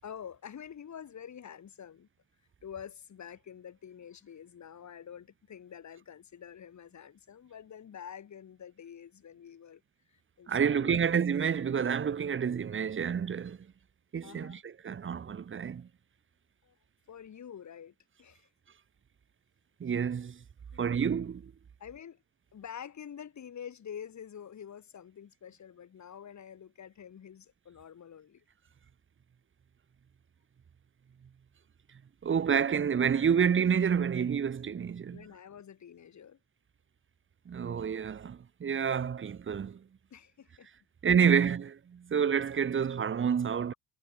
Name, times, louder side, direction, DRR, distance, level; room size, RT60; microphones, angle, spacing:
voice 1, 0.0-2.1 2.6-9.8 10.1-11.0 14.2-14.6 16.6-16.8 17.1-18.5 20.7-21.0 21.8-22.2 22.5-28.4 35.1-36.4 40.1-40.7, left 8 dB, 45° left, 5.9 m, -47 dB
voice 2, 10.5-13.6 14.1-15.9 19.8-20.4 20.8-21.5 32.2-35.2 37.5-39.8 41.0-43.7, right 7 dB, 30° right, 1.3 m, -29 dB
cardioid pair, 130°, 39 cm